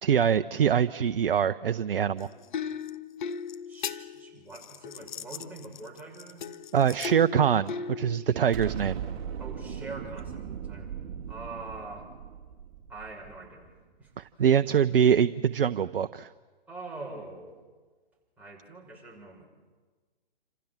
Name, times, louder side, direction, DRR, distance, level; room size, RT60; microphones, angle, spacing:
voice 1, 0.0-2.3 6.7-9.0 14.2-16.3, right 8 dB, 65° right, 12 dB, 0.8 m, -24 dB
sound 1, 2.2-8.5 10.2-10.3, left 7 dB, 50° left, 1.4 m, -38 dB
voice 2, 3.7-6.5 8.2-8.4 9.4-10.9 11.3-12.1 12.9-13.7 14.0-14.1 16.7-17.6 18.4-19.5, right 3 dB, 5° right, -3 dB, 6.2 m, -43 dB
Explosion, 8.5-13.7, right 8 dB, 35° right, 2.8 m, -38 dB
28.5 x 27.0 x 7.4 m, 1.4 s
figure-of-eight pair, 130°, 30 cm